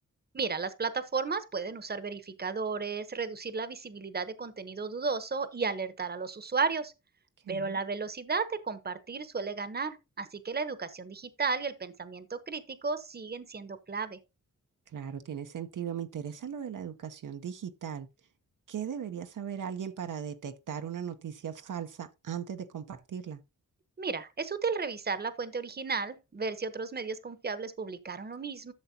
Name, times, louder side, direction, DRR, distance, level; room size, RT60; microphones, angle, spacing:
voice 1, 0.3-6.9 7.5-14.2 24.0-28.7, right 4 dB, 30° right, 1.0 m, -34 dB
voice 2, 7.4-7.8 14.9-18.1 18.7-23.4, right 8 dB, 75° right, 0.8 m, -38 dB
12.0 x 6.9 x 2.8 m
wide cardioid pair, 110°, 31 cm